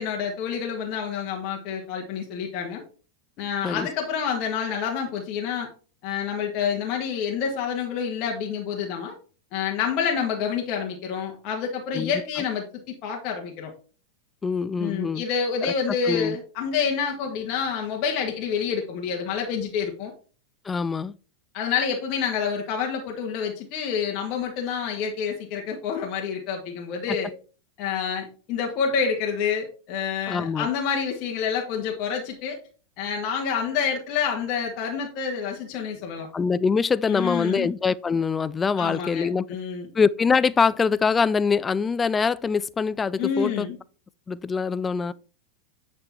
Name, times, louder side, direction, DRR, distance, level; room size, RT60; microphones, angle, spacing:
voice 1, 0.0-2.8 3.4-5.7 6.0-9.1 9.5-13.7 14.8-20.1 21.5-27.3 27.8-32.6 33.0-36.3 37.1-37.7 38.8-39.9 43.2-43.8, left 6 dB, 40° left, 1.6 m, -28 dB
voice 2, 14.4-15.2 15.6-15.7 16.1-16.4 20.7-21.1 30.3-30.7 36.3-39.4 39.9-43.7 44.3-45.1, left 5 dB, 15° left, 0.4 m, -24 dB
9.2 x 5.4 x 4.2 m
figure-of-eight pair, 90°, 0 cm